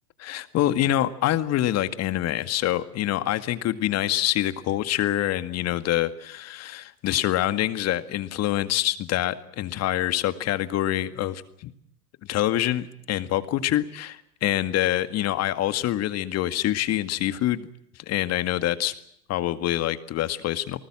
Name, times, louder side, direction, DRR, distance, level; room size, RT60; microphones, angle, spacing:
voice 1, 0.2-11.7 12.3-17.7 18.1-18.9 19.3-20.8, left 13 dB, 30° left, 12 dB, 2.0 m, -25 dB
29.0 x 19.5 x 7.6 m, 0.72 s
hypercardioid pair, 105°, 48 cm